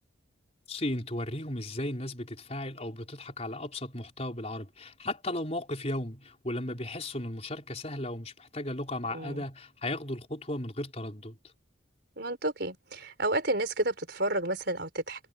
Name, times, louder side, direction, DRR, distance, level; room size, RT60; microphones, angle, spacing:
voice 1, 0.7-11.5, left 1 dB, 35° left, 4.6 m, -35 dB
voice 2, 12.2-15.3, right 1 dB, 55° right, 5.2 m, -31 dB
head